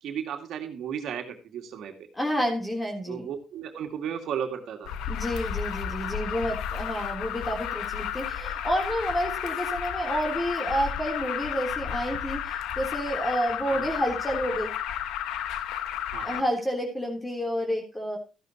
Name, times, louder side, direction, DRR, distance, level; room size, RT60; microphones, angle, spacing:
voice 1, 0.0-1.9 3.1-5.0 13.7-13.8 16.1-16.4, right 8 dB, 75° right, 5 dB, 2.1 m, -34 dB
voice 2, 2.1-3.3 5.1-14.7 16.2-18.2, equal, 15° left, 2 dB, 3.4 m, -29 dB
Alarm, 4.9-16.4, left 9 dB, 90° left, 1.0 m, -32 dB
14.0 x 11.0 x 3.0 m, 0.31 s
cardioid pair, 90°, 0 cm